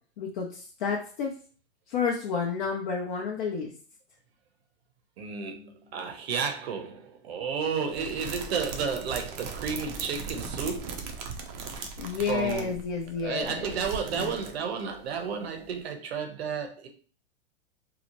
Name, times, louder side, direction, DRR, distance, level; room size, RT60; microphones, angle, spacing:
voice 1, 0.2-1.3 1.9-3.7 7.7-8.1 12.0-13.8 14.1-14.3, left 5 dB, 50° left, 0.6 m, -31 dB
voice 2, 5.2-11.1 12.3-12.8 13.2-16.9, right 6 dB, 65° right, 0.7 m, -32 dB
sound 1, 7.9-15.0 15.2-15.3 15.6-15.8, right 5 dB, 35° right, 0.5 m, -39 dB
2.8 x 2.0 x 2.9 m
hypercardioid pair, 120°, 33 cm